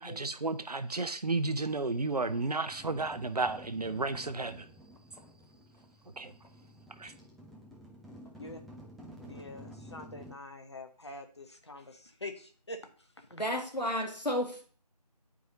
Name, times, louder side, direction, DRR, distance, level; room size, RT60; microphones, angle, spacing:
voice 1, 0.0-4.7 6.2-6.3 7.0-7.1, right 3 dB, 65° right, 0.6 m, -32 dB
sound 1, 2.7-10.3, equal, ahead, 0.4 m, -51 dB
voice 2, 9.3-13.3, left 2 dB, 40° left, 0.7 m, -45 dB
voice 3, 13.3-14.6, equal, 85° left, 1.6 m, -32 dB
8.6 x 4.7 x 2.7 m
figure-of-eight pair, 165°, 21 cm